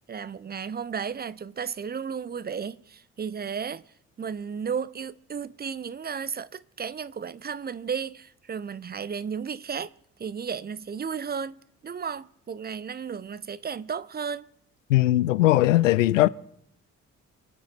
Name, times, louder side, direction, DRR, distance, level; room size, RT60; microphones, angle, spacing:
voice 1, 0.1-3.9 4.2-9.9 10.2-14.5, right 6 dB, 25° right, 0.6 m, -34 dB
voice 2, 14.9-16.3, left 16 dB, 80° left, 0.5 m, -19 dB
26.0 x 9.9 x 4.4 m
figure-of-eight pair, 40°, 38 cm